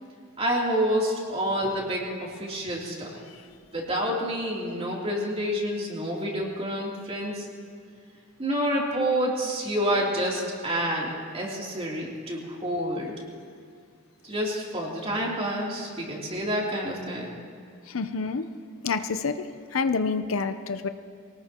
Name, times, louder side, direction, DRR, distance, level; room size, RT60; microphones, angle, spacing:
voice 1, 0.4-3.2 3.7-7.5 8.4-13.1 14.2-17.3, equal, 30° right, -3 dB, 3.2 m, -28 dB
voice 2, 17.9-18.5 18.8-19.4 19.7-20.9, left 4 dB, 70° left, 10 dB, 0.7 m, -27 dB
23.5 x 18.5 x 3.0 m, 2.2 s
head